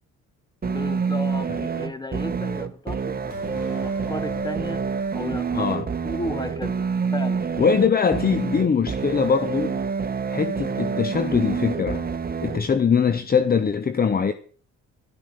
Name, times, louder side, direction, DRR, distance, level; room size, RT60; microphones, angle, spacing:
sound 1, 0.6-12.6, right 5 dB, 30° right, 1.4 m, -27 dB
voice 1, 0.7-6.9 7.1-7.5, left 1 dB, 15° left, 1.5 m, -34 dB
sound 2, 3.3-6.9 7.2-7.3, left 2 dB, 80° left, 5.8 m, -43 dB
voice 2, 5.5-5.8 7.6-9.8 10.3-12.1 12.4-14.3, left 6 dB, 30° left, 0.9 m, -22 dB
12.0 x 12.0 x 6.3 m
cardioid pair, 90°, 30 cm